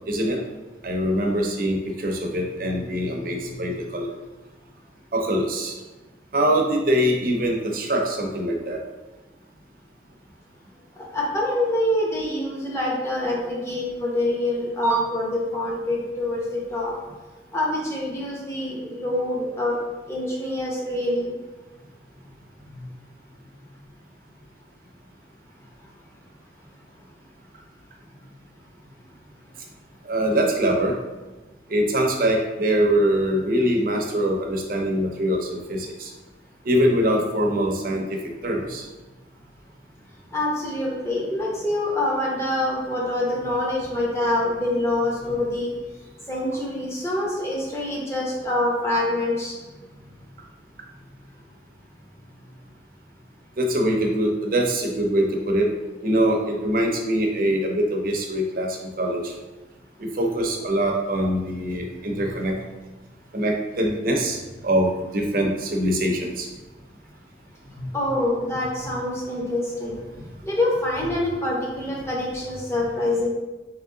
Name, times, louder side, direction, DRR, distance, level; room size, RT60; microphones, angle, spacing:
voice 1, 0.1-0.4 0.8-4.1 5.1-5.8 6.3-8.8 22.7-22.8 30.0-30.9 31.7-36.1 36.6-38.9 53.6-55.7 56.0-59.3 60.0-62.6 63.3-66.5 67.8-67.9, equal, 50° right, 1 dB, 0.6 m, -23 dB
voice 2, 11.1-16.9 17.5-19.8 20.1-21.3 40.3-45.7 46.3-49.5 67.9-70.0 70.4-73.3, left 1 dB, 15° left, -4 dB, 0.8 m, -25 dB
3.6 x 3.0 x 3.7 m, 1.2 s
head